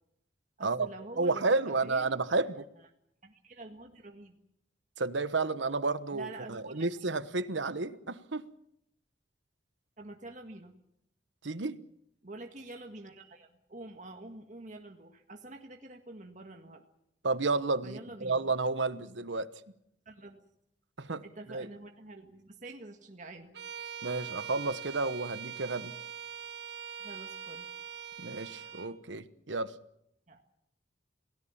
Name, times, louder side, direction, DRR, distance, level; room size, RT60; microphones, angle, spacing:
voice 1, 0.6-2.2 3.2-4.4 6.1-6.9 10.0-10.7 12.2-16.8 17.8-18.4 20.1-20.4 21.2-23.5 27.0-27.7 30.3-30.4, right 2 dB, 45° right, 3 dB, 1.8 m, -47 dB
voice 2, 1.2-2.6 5.0-8.4 11.4-11.8 17.2-19.5 21.0-21.2 21.5-21.7 24.0-25.9 28.2-29.7, right 3 dB, 85° right, 14 dB, 1.1 m, -31 dB
Bowed string instrument, 23.5-28.9, right 8 dB, 70° right, 1.9 m, -43 dB
28.5 x 17.5 x 7.3 m, 0.79 s
head